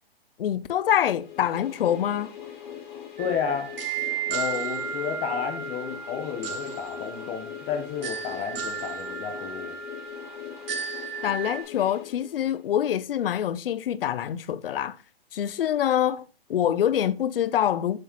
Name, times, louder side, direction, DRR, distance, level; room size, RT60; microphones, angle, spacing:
voice 1, 0.4-2.3 11.2-15.0 15.3-16.2 16.5-18.0, left 10 dB, 70° left, 0.5 m, -25 dB
sound 1, 1.0-12.8, left 9 dB, 50° left, 2.4 m, -41 dB
voice 2, 3.2-3.7 4.3-9.7, left 7 dB, 20° left, 1.0 m, -31 dB
sound 2, 3.2-11.6, right 7 dB, 65° right, 2.0 m, -34 dB
7.5 x 5.8 x 2.9 m
hypercardioid pair, 150°, 30 cm